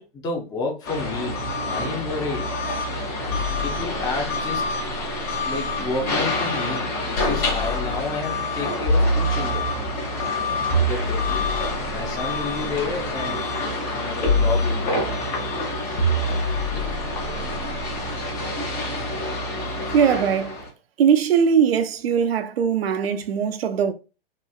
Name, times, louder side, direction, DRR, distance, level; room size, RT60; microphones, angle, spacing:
voice 1, 0.0-2.6 3.6-4.7 5.4-9.8 10.7-11.5 11.9-13.5 13.9-15.1, left 3 dB, 15° left, 0.5 m, -31 dB
sound 1, 0.8-20.7, left 2 dB, 30° left, 1.1 m, -28 dB
sound 2, 3.3-6.0 7.1-8.2 8.9-10.0 10.7-13.0 14.2-15.3 16.0-18.1, equal, 55° left, 0.8 m, -26 dB
voice 2, 19.9-20.6 21.0-23.9, right 7 dB, 85° right, 0.5 m, -20 dB
2.9 x 2.4 x 2.3 m
hypercardioid pair, 120°, 30 cm